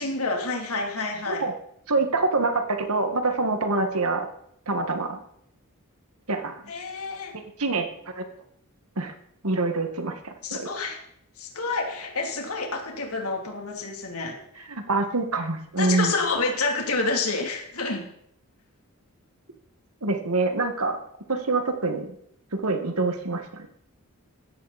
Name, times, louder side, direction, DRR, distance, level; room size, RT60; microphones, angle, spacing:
voice 1, 0.0-1.4 6.7-7.3 10.4-11.0 11.4-14.4 15.8-18.1, left 3 dB, 75° left, 2 dB, 3.2 m, -28 dB
voice 2, 1.9-4.3 4.7-5.2 6.3-6.5 7.3-7.9 8.2-8.3 9.0-9.1 9.4-10.7 14.7-16.1 20.0-21.0 21.3-22.1 22.6-23.7, right 3 dB, 75° right, 6 dB, 1.9 m, -25 dB
16.0 x 14.0 x 4.3 m, 0.71 s
head